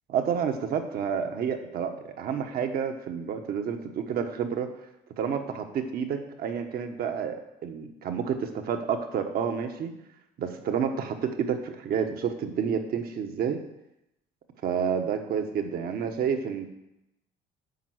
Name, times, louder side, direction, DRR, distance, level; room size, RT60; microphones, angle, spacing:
voice 1, 0.1-4.7 5.2-9.9 10.4-13.6 14.6-16.6, right 7 dB, 65° right, 6 dB, 1.3 m, -29 dB
9.3 x 5.6 x 7.9 m, 0.88 s
cardioid pair, 110°, 17 cm